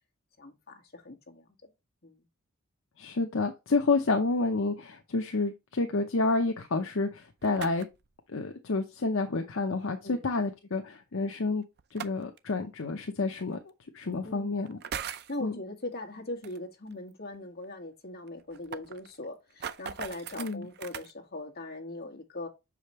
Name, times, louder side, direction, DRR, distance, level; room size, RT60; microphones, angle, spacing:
voice 1, 0.4-1.7 2.0-2.3 10.0-10.2 14.2-14.5 15.1-22.5, left 2 dB, 50° left, 1.6 m, -40 dB
voice 2, 3.0-7.9 8.3-11.6 11.9-13.6 13.9-14.8 15.4-15.5 20.4-20.7, left 3 dB, 65° left, 0.8 m, -29 dB
sound 1, 7.2-8.1 9.7-9.8 11.8-12.4 13.5-13.6 14.7-15.4 16.4-16.6 16.9-17.0 17.3-17.4 17.6-17.7 18.3-21.1, right 8 dB, 50° right, 0.5 m, -40 dB
6.7 x 5.1 x 3.0 m
head